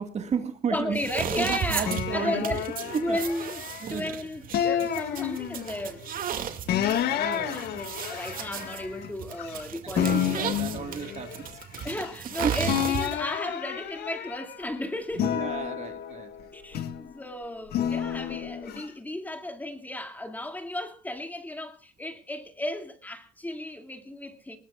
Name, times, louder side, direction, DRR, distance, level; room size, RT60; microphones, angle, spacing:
voice 1, 0.0-1.0 1.4-2.5 2.8-3.2 3.8-4.1 7.1-7.7 9.9-11.9 12.4-12.5 15.2-16.5, right 6 dB, 40° right, 1.8 m, -33 dB
voice 2, 0.7-2.7 3.0-6.1 7.0-10.2 11.8-15.4 16.5-24.6, left 1 dB, 10° left, 2.4 m, -34 dB
sound 1, 0.9-13.3, right 8 dB, 55° right, 2.3 m, -35 dB
sound 2, 1.8-4.0 4.5-5.9 6.7-9.6 9.9-12.3 12.6-14.7 15.1-17.1 17.7-18.8, left 10 dB, 70° left, 1.7 m, -30 dB
20.5 x 20.5 x 2.4 m
cardioid pair, 110°, 17 cm